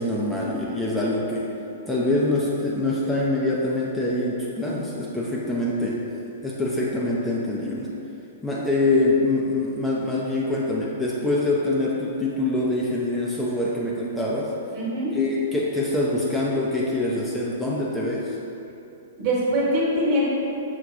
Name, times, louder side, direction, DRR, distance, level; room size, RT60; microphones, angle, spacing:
voice 1, 0.0-1.5 1.9-6.0 6.4-7.9 8.4-14.5 15.1-18.4, left 2 dB, 10° left, -5 dB, 0.5 m, -24 dB
voice 2, 14.7-15.1 19.2-20.3, equal, 45° right, -6 dB, 1.3 m, -23 dB
6.1 x 2.2 x 3.6 m, 2.8 s
hypercardioid pair, 125°, 0 cm